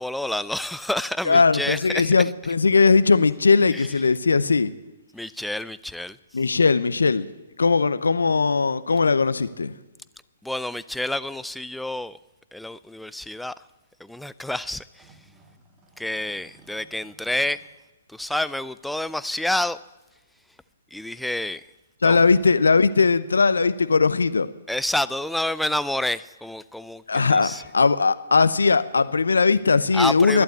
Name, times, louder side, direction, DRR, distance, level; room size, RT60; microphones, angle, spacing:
voice 1, 0.0-2.1 5.1-6.2 10.4-12.2 12.5-13.5 14.0-15.2 16.0-17.6 18.1-19.8 20.9-21.6 22.1-22.2 24.7-27.0 27.3-27.6 29.9-30.4, left 1 dB, ahead, 0.4 m, -28 dB
voice 2, 1.2-4.7 6.3-7.3 7.6-9.8 22.0-24.5 27.1-30.4, left 4 dB, 80° left, 0.7 m, -19 dB
sound 1, 5.1-5.2 5.3-5.4 6.6-6.9 8.4-8.5 8.8-8.9 10.1-10.2 11.9-12.0 12.9-13.0 13.5-13.7 15.0-17.7, right 3 dB, 20° right, 1.6 m, -56 dB
12.0 x 11.5 x 8.4 m
figure-of-eight pair, 125°, 0 cm